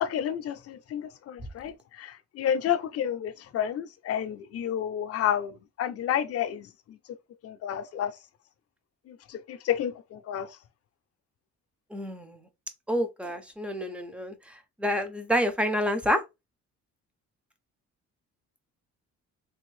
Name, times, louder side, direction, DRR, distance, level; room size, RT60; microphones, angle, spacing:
voice 1, 0.0-7.0 7.4-8.1 9.1-10.6, left 9 dB, 50° left, 0.5 m, -30 dB
voice 2, 11.9-12.4 12.9-16.2, equal, 5° right, 0.5 m, -28 dB
3.4 x 2.5 x 3.1 m
cardioid pair, 160°, 31 cm